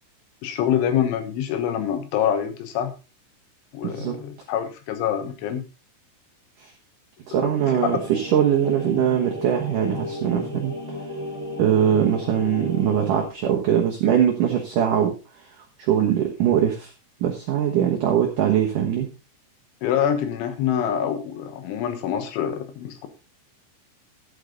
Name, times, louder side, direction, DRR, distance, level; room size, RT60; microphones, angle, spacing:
voice 1, 0.4-2.9 3.7-5.7 7.4-7.9 19.8-23.1, left 9 dB, 75° left, 9 dB, 3.6 m, -25 dB
voice 2, 3.8-4.2 6.6-6.7 7.3-10.7 11.6-15.1 15.8-16.9 17.2-19.1, right 9 dB, 80° right, 1 dB, 1.8 m, -21 dB
sound 1, 7.5-13.2, left 2 dB, 5° left, 3.4 m, -34 dB
12.0 x 8.4 x 3.9 m, 0.29 s
omnidirectional pair, 5.7 m